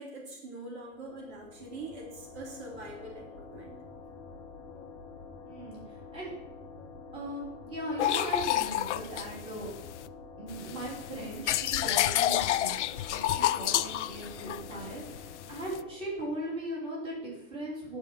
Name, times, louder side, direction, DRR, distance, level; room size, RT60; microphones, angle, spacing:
voice 1, 0.0-3.8, right 2 dB, 55° right, 0 dB, 2.8 m, -43 dB
sound 1, 0.9-16.7, left 4 dB, 10° left, 0.5 m, -48 dB
voice 2, 5.4-5.8 6.1-6.3 7.1-9.7 10.4-18.0, right 1 dB, 15° right, -5 dB, 3.3 m, -38 dB
sound 2, 8.0-10.1 10.5-15.8, left 13 dB, 60° left, 0.5 m, -29 dB
10.5 x 5.1 x 7.5 m, 0.85 s
supercardioid pair, 175°, 40 cm